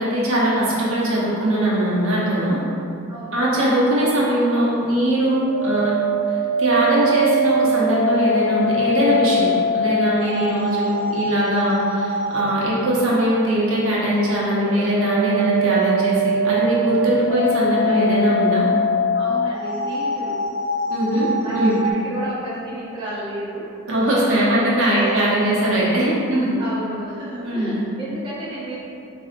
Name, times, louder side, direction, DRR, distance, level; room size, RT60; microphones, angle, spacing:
voice 1, 0.0-2.6 3.3-5.9 6.3-9.5 9.7-18.7 20.9-21.8 23.9-26.6 27.4-27.8, right 1 dB, 65° right, -7 dB, 0.8 m, -20 dB
voice 2, 3.1-3.4 19.1-20.4 21.1-23.7 24.4-25.3 26.6-28.8, right 2 dB, 25° right, -9 dB, 0.6 m, -32 dB
sound 1, 5.2-12.6 14.6-21.9, equal, 45° left, 0.8 m, -23 dB
4.1 x 2.7 x 2.5 m, 2.6 s
head